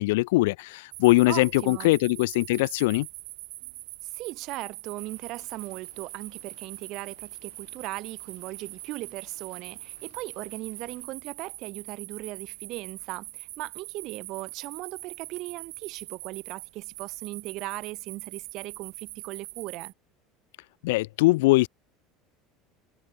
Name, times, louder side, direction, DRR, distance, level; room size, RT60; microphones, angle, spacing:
voice 1, 0.0-3.1 20.8-21.7, left 21 dB, 85° left, 0.3 m, -22 dB
sound 1, 0.9-19.9, right 25 dB, 75° right, 1.9 m, -43 dB
voice 2, 1.3-1.9 4.0-19.9, right 19 dB, 45° right, 0.7 m, -38 dB
sound 2, 5.0-11.1, left 40 dB or more, 65° left, 3.9 m, -61 dB
cardioid pair, 165°, 0 cm